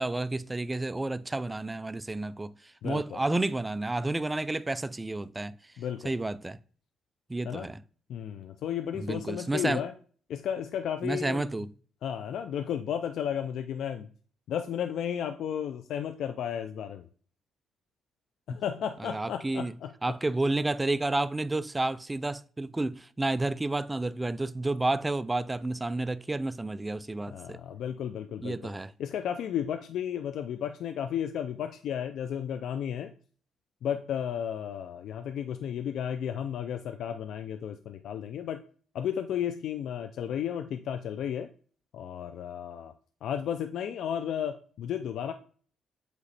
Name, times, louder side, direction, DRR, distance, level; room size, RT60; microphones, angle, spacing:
voice 1, 0.0-2.5 2.8-5.5 6.0-6.6 7.3-7.8 9.0-9.8 11.0-11.7 18.5-18.6 19.0-19.7 20.0-27.6 28.4-28.9, right 2 dB, 15° right, 0.4 m, -30 dB
voice 2, 2.8-3.2 5.8-6.1 7.4-7.7 8.1-9.9 10.3-11.5 12.0-14.1 14.5-17.1 18.5-19.9 27.3-28.6 29.0-33.1 33.8-38.6 38.9-41.5 41.9-42.9 43.2-45.3, left 9 dB, 75° left, 0.4 m, -33 dB
8.0 x 3.1 x 4.1 m
cardioid pair, 90°, 0 cm